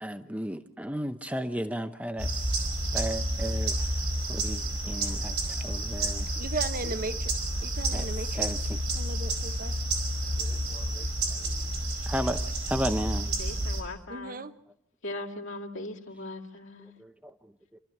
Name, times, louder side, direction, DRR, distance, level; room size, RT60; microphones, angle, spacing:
voice 1, 0.0-2.6 2.9-4.0 4.3-6.3 7.9-8.8 10.4-11.5 12.1-12.4 12.7-13.3 16.8-17.8, equal, 5° right, 8 dB, 0.7 m, -35 dB
sound 1, 2.2-13.8, right 1 dB, 90° right, 4.8 m, -30 dB
voice 2, 6.4-7.3 7.6-8.5 8.9-9.7 14.1-14.5, right 3 dB, 40° right, 11 dB, 0.9 m, -36 dB
voice 3, 13.3-14.4 15.0-16.9, left 2 dB, 60° left, 0 dB, 2.3 m, -39 dB
29.0 x 13.5 x 7.2 m, 0.69 s
head